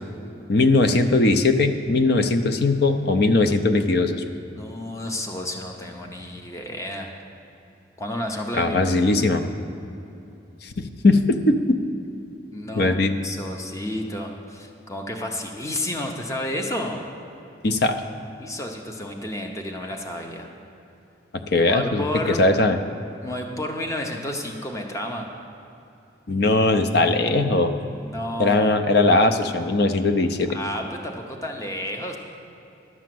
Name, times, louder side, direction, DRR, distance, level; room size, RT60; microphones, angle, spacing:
voice 1, 0.5-4.2 8.5-9.4 10.6-11.8 12.7-13.1 17.6-18.0 21.5-22.8 26.3-27.7 28.4-30.5, left 2 dB, 55° left, 8 dB, 0.6 m, -19 dB
voice 2, 4.6-7.1 8.0-8.8 9.0-9.1 12.5-12.9 13.2-17.0 18.4-20.5 21.7-22.5 23.2-25.3 28.0-28.8 30.5-32.2, left 1 dB, 15° left, 2 dB, 0.7 m, -31 dB
11.0 x 6.3 x 7.7 m, 2.8 s
head